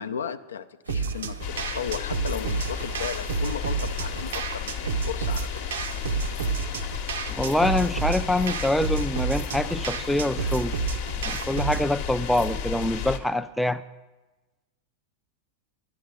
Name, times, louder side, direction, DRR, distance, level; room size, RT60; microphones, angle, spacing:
voice 1, 0.0-5.6, left 7 dB, 70° left, 11 dB, 0.4 m, -35 dB
sound 1, 0.8-7.6, right 2 dB, 80° right, 0.9 m, -47 dB
sound 2, 0.9-11.9, right 5 dB, 65° right, 0.6 m, -30 dB
sound 3, 1.4-13.2, left 8 dB, 50° left, 0.9 m, -33 dB
voice 2, 7.3-10.7 11.2-13.8, left 1 dB, ahead, 10 dB, 0.3 m, -25 dB
11.5 x 10.0 x 4.9 m, 1.1 s
figure-of-eight pair, 90°, 0 cm